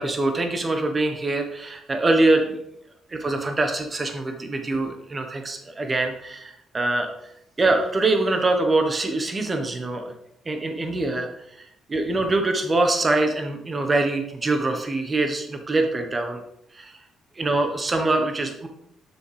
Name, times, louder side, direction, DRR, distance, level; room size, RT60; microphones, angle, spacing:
voice 1, 0.0-2.6 3.1-7.1 7.6-10.1 10.4-16.4 16.7-17.0 17.4-18.7, right 2 dB, 30° right, 5 dB, 1.2 m, -24 dB
7.2 x 6.3 x 3.4 m, 0.77 s
cardioid pair, 90°, 0 cm